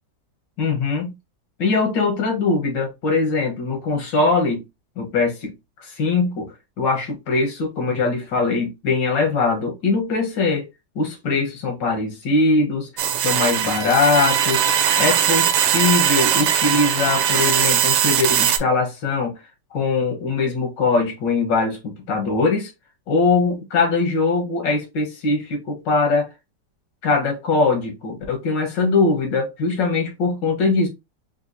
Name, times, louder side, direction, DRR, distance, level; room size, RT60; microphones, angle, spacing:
voice 1, 0.6-1.1 1.6-4.7 5.0-5.5 5.8-10.7 11.0-12.9 13.2-14.7 15.0-19.4 19.7-22.7 23.1-26.3 27.0-30.9, left 3 dB, 90° left, 1.9 m, -21 dB
sound 1, 13.0-18.6, right 9 dB, 75° right, 1.1 m, -20 dB
4.6 x 2.7 x 2.6 m
omnidirectional pair, 1.9 m